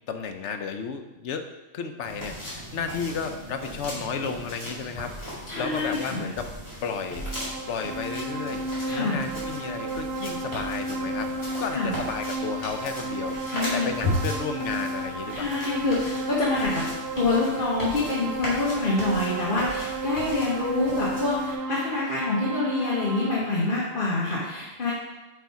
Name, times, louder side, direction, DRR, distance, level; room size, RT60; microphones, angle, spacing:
voice 1, 0.1-1.4 1.7-6.5 6.8-7.2 7.7-13.4 13.7-15.6, left 6 dB, 80° left, 7 dB, 1.0 m, -33 dB
sound 1, 2.0-21.5, equal, 30° left, 2.7 m, -37 dB
voice 2, 5.5-6.3 8.9-9.3 11.7-11.9 13.5-13.9 15.3-16.8 17.2-24.9, left 3 dB, 50° left, -6 dB, 1.3 m, -26 dB
sound 2, 7.1-23.4, right 2 dB, 65° right, 0.8 m, -33 dB
8.1 x 4.2 x 4.7 m, 1.1 s
omnidirectional pair, 1.2 m